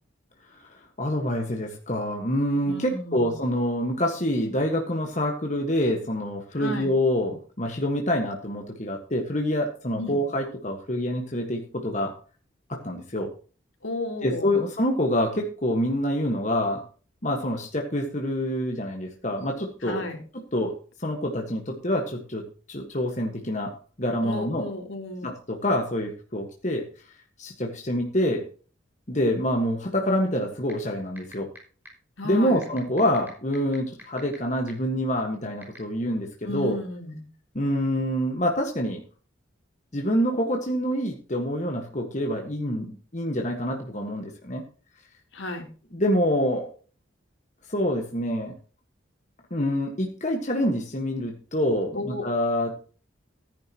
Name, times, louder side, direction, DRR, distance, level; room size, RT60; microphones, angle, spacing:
voice 1, 0.7-12.1 12.7-13.3 14.2-16.8 17.2-20.0 20.3-24.7 25.2-26.9 27.4-28.4 29.1-31.5 32.2-36.8 37.6-39.0 39.9-44.6 45.9-46.7 47.7-48.5 49.5-52.7, equal, 35° left, 2 dB, 1.6 m, -26 dB
voice 2, 2.6-3.3 6.6-6.9 10.0-10.2 13.8-14.5 19.8-20.2 24.2-25.3 32.2-32.6 36.4-37.2 45.3-45.7 51.9-52.3, left 2 dB, 75° left, 2 dB, 3.6 m, -33 dB
sound 1, 30.7-30.8 31.2-31.6 31.8-31.9 32.6-34.3 34.7-34.8 35.6-35.8, right 1 dB, 10° right, 5.5 m, -45 dB
15.0 x 10.0 x 3.0 m, 0.39 s
head